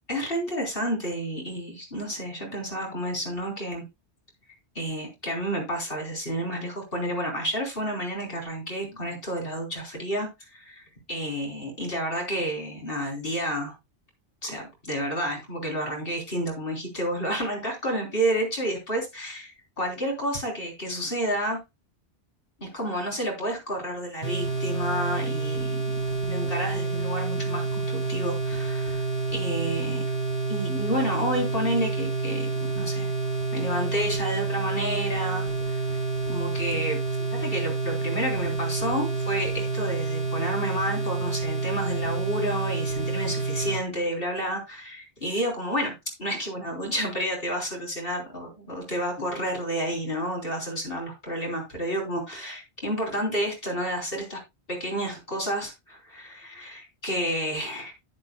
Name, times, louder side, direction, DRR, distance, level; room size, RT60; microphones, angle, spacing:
voice 1, 0.1-3.8 4.8-13.7 14.4-21.6 22.6-29.0 29.3-30.0 30.5-32.5 32.7-33.1 33.5-35.8 36.3-37.0 37.3-54.4 54.7-57.9, equal, 55° left, 1 dB, 4.0 m, -30 dB
sound 1, 24.2-43.8, right 3 dB, 75° left, 6.2 m, -28 dB
10.5 x 10.0 x 2.3 m, 0.23 s
omnidirectional pair, 1.1 m